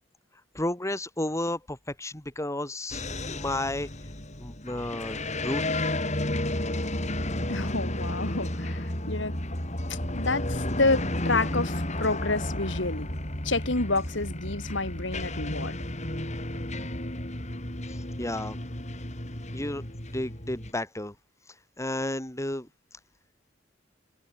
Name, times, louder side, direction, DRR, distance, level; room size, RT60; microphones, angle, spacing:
voice 1, 0.5-3.9 4.4-5.7 17.9-18.6 19.5-19.8 20.1-21.1 21.8-22.7, left 1 dB, 15° left, 2.6 m, -32 dB
sound 1, 2.9-20.7, left 1 dB, 40° left, 6.3 m, -32 dB
voice 2, 7.5-9.4 9.9-13.1 13.4-15.8, left 3 dB, 75° left, 3.3 m, -29 dB
head